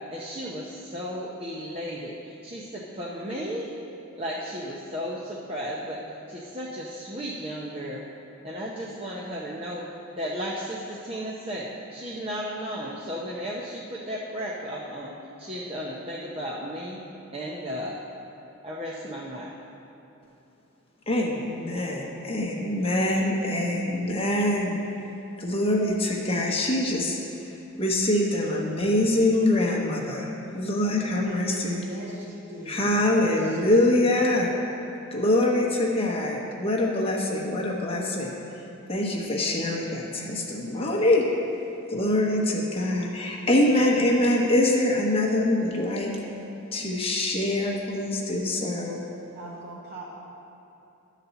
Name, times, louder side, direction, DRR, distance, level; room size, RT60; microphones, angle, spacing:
voice 1, 0.1-3.7 4.2-6.0 6.3-8.0 8.4-9.9 10.2-15.1 15.4-17.0 17.3-18.0 18.6-19.5, equal, 25° right, -5 dB, 0.7 m, -34 dB
voice 2, 21.1-24.8 25.4-27.5 27.8-31.8 32.6-34.5 35.1-38.4 38.9-41.3 41.9-46.1 46.7-49.0, left 1 dB, 25° left, -2 dB, 0.9 m, -24 dB
voice 3, 31.2-33.8 49.3-50.1, right 1 dB, 50° right, -6 dB, 1.1 m, -41 dB
11.5 x 4.1 x 6.9 m, 2.8 s
head